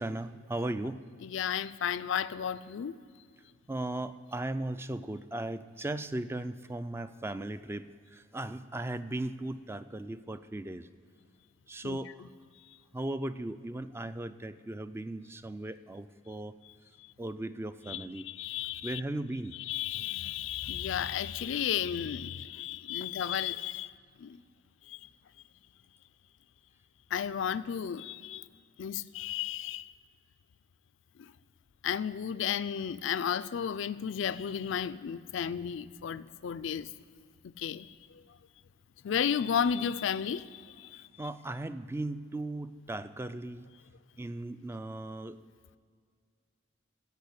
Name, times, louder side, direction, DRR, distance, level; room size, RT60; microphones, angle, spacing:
voice 1, 0.0-1.0 3.7-10.9 11.7-12.3 12.9-16.5 17.2-18.3 18.8-19.6 23.0-23.1 41.2-43.7 44.2-45.4, right 1 dB, 10° right, 12 dB, 0.3 m, -37 dB
voice 2, 1.2-3.0 11.8-12.0 17.9-19.0 19.7-23.9 24.2-24.4 24.9-25.0 27.1-28.4 28.8-29.9 31.2-31.3 31.8-36.9 37.4-37.9 39.0-41.0, left 8 dB, 65° left, 16 dB, 0.4 m, -33 dB
15.0 x 5.4 x 8.0 m, 2.1 s
head